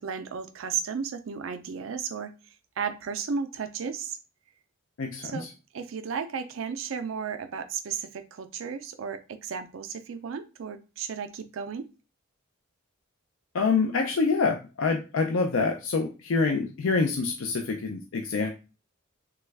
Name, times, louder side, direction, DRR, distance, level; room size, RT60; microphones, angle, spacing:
voice 1, 0.0-2.3 2.8-4.2 5.2-5.5 5.7-11.9, right 6 dB, 65° right, 0.4 m, -34 dB
voice 2, 5.0-5.5 13.5-18.5, left 4 dB, 65° left, 0.4 m, -26 dB
3.0 x 2.2 x 3.3 m
head